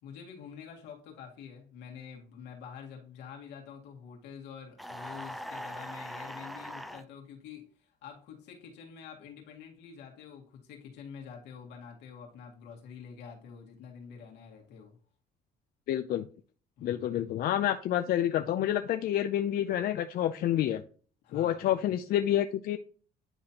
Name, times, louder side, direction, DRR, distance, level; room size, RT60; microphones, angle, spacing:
voice 1, 0.0-15.0 16.8-17.2 21.2-21.7, left 7 dB, 85° left, 0 dB, 2.0 m, -47 dB
sound 1, 4.8-7.0, equal, ahead, 0.5 m, -41 dB
voice 2, 15.9-16.3 16.8-20.8 21.3-22.8, left 11 dB, 60° left, 8 dB, 0.5 m, -28 dB
10.0 x 4.2 x 2.8 m, 0.42 s
cardioid pair, 110°, 17 cm